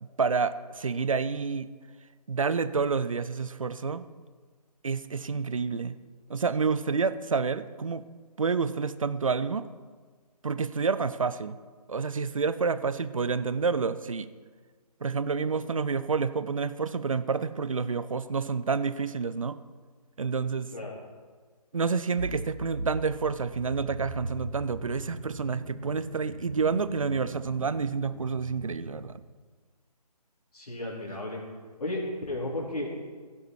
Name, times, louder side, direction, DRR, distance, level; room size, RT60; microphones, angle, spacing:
voice 1, 0.0-1.7 2.3-4.0 4.8-6.0 6.3-8.0 8.4-9.7 10.4-11.6 11.9-14.3 15.0-19.6 20.2-20.7 21.7-29.2, right 5 dB, 55° right, 14 dB, 0.7 m, -29 dB
sound 1, 22.2-29.0, right 2 dB, 75° right, 1.9 m, -39 dB
voice 2, 30.5-31.4 31.8-32.9, left 1 dB, 65° left, -4 dB, 4.2 m, -33 dB
16.5 x 11.5 x 4.8 m, 1.5 s
figure-of-eight pair, 150°, 21 cm